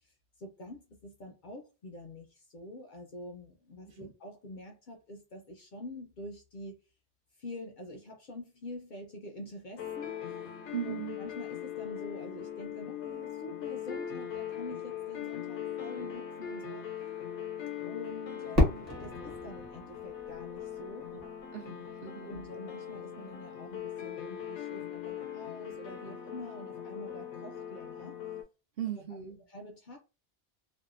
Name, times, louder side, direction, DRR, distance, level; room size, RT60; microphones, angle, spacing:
voice 1, 0.4-6.8 7.4-10.2 10.8-16.9 17.8-21.1 22.2-28.2 29.5-30.0, left 1 dB, 55° left, 0.6 m, -46 dB
sound 1, 9.8-28.4, left 9 dB, 85° left, 0.9 m, -40 dB
voice 2, 10.7-11.2 21.1-21.3 21.5-22.4 28.8-29.4, right 10 dB, 65° right, 0.7 m, -38 dB
Fireworks, 18.6-21.4, left 2 dB, 40° right, 1.0 m, -31 dB
2.6 x 2.1 x 2.4 m
omnidirectional pair, 1.2 m